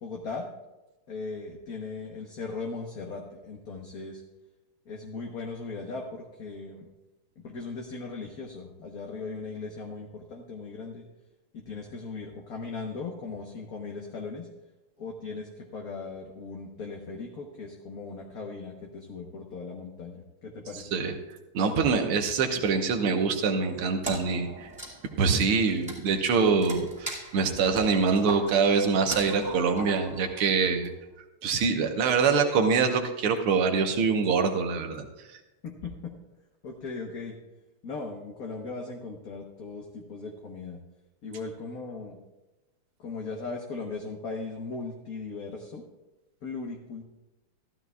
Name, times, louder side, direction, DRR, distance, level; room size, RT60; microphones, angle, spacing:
voice 1, 0.0-0.4 1.1-4.2 4.9-6.9 7.4-11.0 11.5-14.5 15.0-20.9 35.6-36.1 36.6-37.3 37.8-40.8 41.2-42.2 43.0-45.8 46.4-47.0, left 4 dB, 50° left, 0 dB, 1.4 m, -38 dB
voice 2, 21.5-24.7 25.2-30.9 31.4-35.1, right 5 dB, 85° right, 4 dB, 2.0 m, -24 dB
Wood, 24.0-30.8, right 2 dB, 5° right, 2.1 m, -40 dB
15.0 x 13.5 x 2.4 m, 1.1 s
omnidirectional pair, 2.4 m